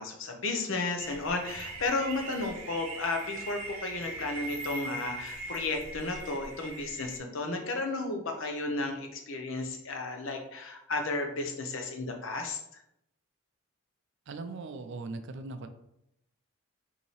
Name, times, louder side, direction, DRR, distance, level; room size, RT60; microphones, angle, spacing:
voice 1, 0.0-12.8, left 3 dB, 55° left, 4 dB, 0.7 m, -33 dB
sound 1, 1.0-7.2, right 2 dB, 75° right, 0.8 m, -41 dB
voice 2, 14.3-15.7, right 3 dB, 55° right, 8 dB, 0.4 m, -39 dB
5.4 x 2.8 x 3.1 m, 0.80 s
head